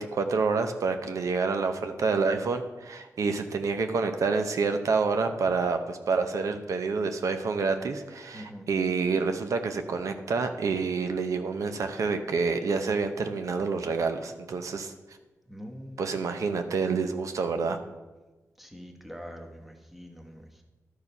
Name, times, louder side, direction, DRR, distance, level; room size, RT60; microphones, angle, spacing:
voice 1, 0.0-14.9 16.0-17.8, right 4 dB, 70° right, 7 dB, 0.7 m, -28 dB
voice 2, 8.3-8.7 15.5-16.2 18.6-20.6, equal, 5° right, 3 dB, 1.0 m, -44 dB
12.0 x 4.8 x 5.4 m, 1.2 s
wide cardioid pair, 140°, 6 cm